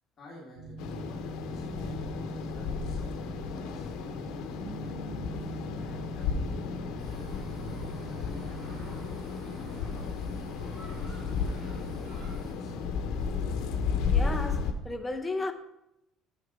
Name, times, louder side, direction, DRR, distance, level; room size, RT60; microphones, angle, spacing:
voice 1, 0.2-2.1 2.5-4.9 5.8-7.4 8.1-8.9 9.4-10.3 10.7-12.9, left 1 dB, 30° left, 1.8 m, -50 dB
sound 1, 0.5-9.1, right 1 dB, 75° right, 1.5 m, -42 dB
sound 2, 0.8-14.7, left 5 dB, 65° left, 0.9 m, -33 dB
sound 3, 7.0-12.5, right 1 dB, 25° right, 2.7 m, -53 dB
voice 2, 14.1-15.5, left 2 dB, 10° left, 0.7 m, -34 dB
7.0 x 6.5 x 5.4 m
cardioid pair, 165°, 0 cm